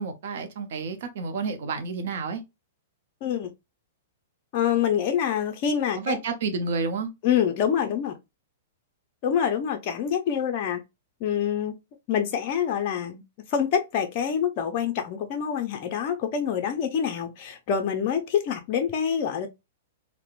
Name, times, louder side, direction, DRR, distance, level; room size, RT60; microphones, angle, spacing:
voice 1, 0.0-2.4 6.0-7.1, right 4 dB, 65° right, 0.7 m, -30 dB
voice 2, 4.5-6.2 7.2-8.2 9.2-10.8 11.2-11.8 12.1-13.2 13.5-19.5, left 8 dB, 45° left, 0.5 m, -26 dB
2.8 x 2.1 x 2.4 m
hypercardioid pair, 125°, 0 cm